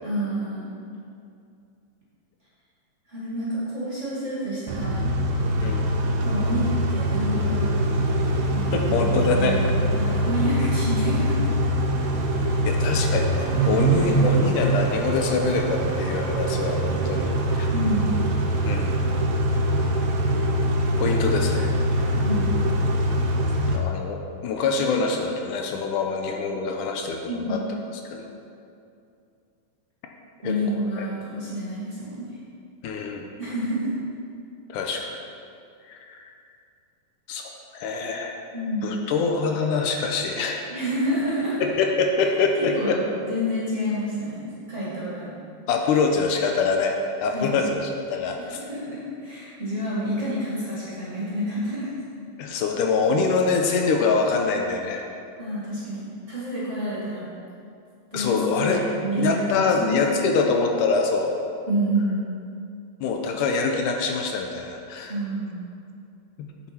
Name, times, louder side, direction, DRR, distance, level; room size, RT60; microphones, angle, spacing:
voice 1, 0.0-0.7 3.1-5.1 6.2-6.6 6.9-7.8 8.5-11.4 12.4-12.7 13.6-14.2 17.7-18.3 22.1-22.7 27.2-27.8 30.4-32.3 33.4-34.0 38.5-39.1 40.7-41.6 42.6-45.3 47.3-47.6 48.6-51.9 55.4-57.3 58.1-60.3 61.7-62.3 65.1-65.7, equal, 30° right, -9 dB, 1.7 m, -29 dB
Car / Idling / Accelerating revving vroom, 4.7-23.8, right 1 dB, 70° right, 1.5 m, -23 dB
voice 2, 5.6-5.9 8.7-9.6 12.7-17.7 18.7-18.9 21.0-21.7 23.6-27.6 27.9-28.3 30.4-30.5 31.0-31.1 32.8-33.3 34.7-35.2 35.9-36.2 37.3-38.4 38.8-40.6 41.6-43.0 45.7-48.6 52.4-55.0 58.1-58.8 59.2-61.3 63.0-65.1 66.4-66.5, left 4 dB, 80° left, 2 dB, 2.1 m, -25 dB
8.2 x 7.4 x 4.4 m, 2.5 s
omnidirectional pair, 3.8 m